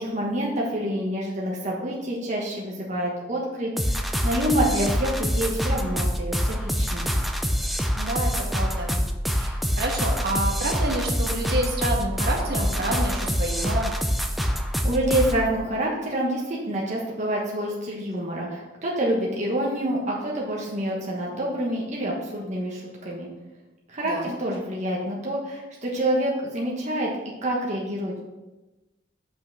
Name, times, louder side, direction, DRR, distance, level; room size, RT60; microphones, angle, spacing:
voice 1, 0.0-7.1 14.4-23.3 23.9-27.1 27.4-28.2, right 1 dB, 40° right, -3 dB, 1.2 m, -27 dB
sound 1, 3.8-15.5, equal, ahead, 0.5 m, -26 dB
voice 2, 8.0-9.0 9.4-13.9 24.0-24.3, right 1 dB, 55° right, 0 dB, 1.3 m, -28 dB
5.7 x 5.6 x 5.8 m, 1.1 s
head